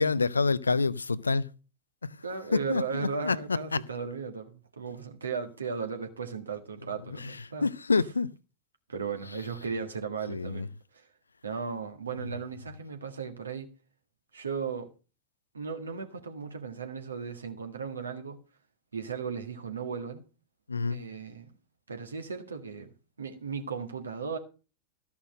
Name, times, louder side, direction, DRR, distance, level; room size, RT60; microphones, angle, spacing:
voice 1, 0.0-1.5 2.0-2.1 2.5-2.8 3.2-3.8 7.2-7.4 7.6-8.3 10.3-10.7 20.7-21.0, left 4 dB, 75° left, 0.5 m, -27 dB
voice 2, 2.2-7.7 8.9-11.0 11.4-13.7 14.3-14.9 15.5-18.4 18.9-20.2 20.9-21.5 21.9-24.4, right 5 dB, 75° right, 1.7 m, -36 dB
13.5 x 5.9 x 6.3 m
figure-of-eight pair, 90°, 0 cm